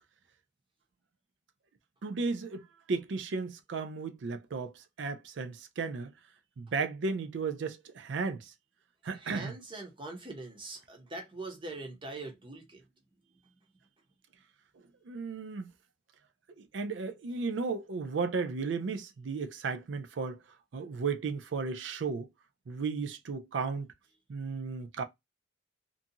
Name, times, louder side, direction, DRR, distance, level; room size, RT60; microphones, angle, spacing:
voice 1, 2.0-6.1 6.6-8.5 9.0-9.5 15.1-15.7 16.6-20.4 20.7-22.3 22.7-23.9 24.3-25.0, right 4 dB, 70° right, 0.4 m, -34 dB
voice 2, 9.1-12.8, right 2 dB, 25° right, 0.9 m, -42 dB
2.6 x 2.4 x 2.7 m
head